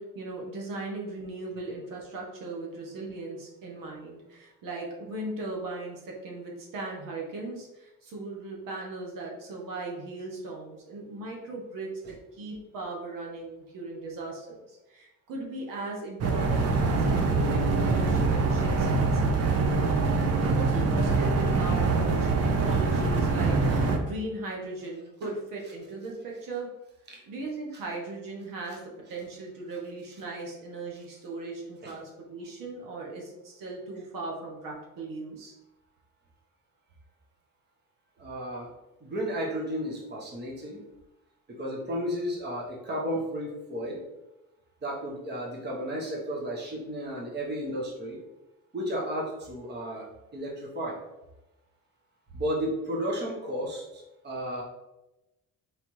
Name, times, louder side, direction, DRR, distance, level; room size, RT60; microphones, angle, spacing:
voice 1, 0.0-11.9 12.3-19.4 20.4-26.7 27.2-35.5, right 2 dB, 80° right, -1 dB, 1.2 m, -38 dB
sound 1, 16.2-24.0, right 3 dB, 50° right, 0.8 m, -24 dB
voice 2, 38.2-38.7 39.0-40.8 41.5-44.0 44.8-48.2 48.7-50.1 50.3-51.0 52.3-54.6, equal, 30° right, -2 dB, 1.1 m, -33 dB
4.4 x 3.3 x 3.1 m, 0.97 s
cardioid pair, 115°, 33 cm